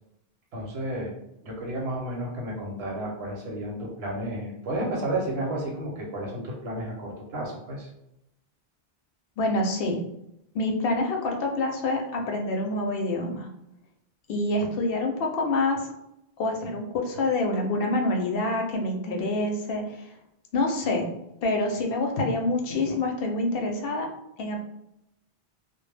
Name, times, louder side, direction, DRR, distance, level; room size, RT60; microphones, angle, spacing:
voice 1, 0.5-1.1 1.4-7.9, right 1 dB, 90° right, -1 dB, 1.0 m, -32 dB
voice 2, 9.4-10.0 10.5-13.5 14.3-15.9 16.4-20.1 20.5-21.0 21.4-24.1 24.4-24.6, left 2 dB, 70° left, 2 dB, 0.7 m, -26 dB
2.2 x 2.1 x 3.2 m, 0.81 s
omnidirectional pair, 1.1 m